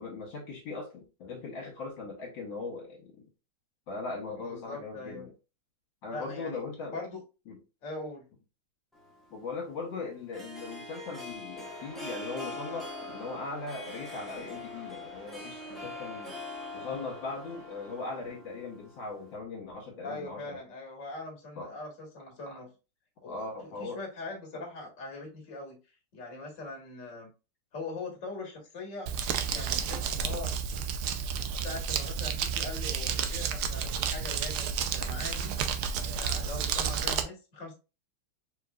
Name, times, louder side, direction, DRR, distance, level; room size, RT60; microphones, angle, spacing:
voice 1, 0.0-3.2 3.9-5.3 6.0-7.0 7.5-7.6 9.3-16.4 16.7-20.6 21.6-21.7 22.5-22.6 23.3-24.0, left 3 dB, 65° left, 1.8 m, -39 dB
voice 2, 4.4-5.3 6.1-6.6 6.9-7.2 7.8-8.3 20.0-22.7 23.2-25.8 26.1-27.3 27.7-30.5 31.2-35.5 36.0-37.7, left 3 dB, 40° left, 1.8 m, -41 dB
Harp, 8.9-19.4, left 2 dB, ahead, 0.8 m, -43 dB
sound 1, 11.5-18.4, right 2 dB, 40° right, 1.2 m, -51 dB
Crumpling crinkling, 29.1-37.2, right 7 dB, 80° right, 0.9 m, -31 dB
4.6 x 3.8 x 2.3 m
omnidirectional pair, 2.3 m